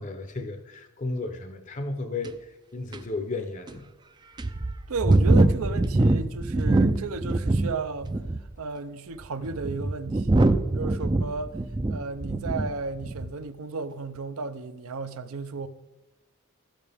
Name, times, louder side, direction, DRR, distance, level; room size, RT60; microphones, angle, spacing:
voice 1, 0.0-3.9, left 3 dB, 35° left, 0.6 m, -34 dB
sound 1, 2.2-2.3 2.9-3.0 3.7-3.8 4.4-7.7 8.0-8.5 9.2-12.7 13.0-13.3, right 2 dB, 20° right, 0.4 m, -23 dB
voice 2, 4.9-8.1 8.4-11.6 11.9-15.7, right 3 dB, 70° right, 0.6 m, -34 dB
13.0 x 9.0 x 3.4 m
head